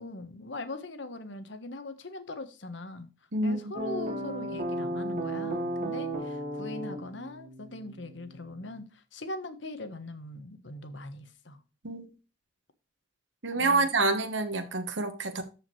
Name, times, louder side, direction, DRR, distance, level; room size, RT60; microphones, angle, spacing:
voice 1, 0.0-3.1 3.4-11.6 13.5-13.9, left 2 dB, 70° left, 1.3 m, -41 dB
sound 1, 3.7-8.8, right 1 dB, 40° right, 2.0 m, -35 dB
voice 2, 13.4-15.4, right 3 dB, 70° right, 1.3 m, -27 dB
14.0 x 5.0 x 3.2 m
head